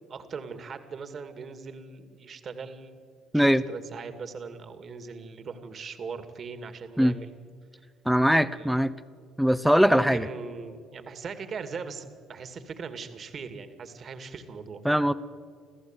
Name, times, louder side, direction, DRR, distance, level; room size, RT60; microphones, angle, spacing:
voice 1, 0.1-3.0 3.3-7.3 8.5-8.7 9.8-15.0, right 5 dB, 45° right, 9 dB, 2.4 m, -40 dB
voice 2, 8.0-8.9 9.4-10.3 14.8-15.1, equal, ahead, 13 dB, 0.9 m, -21 dB
29.0 x 14.5 x 9.0 m, 2.1 s
supercardioid pair, 70°, 0 cm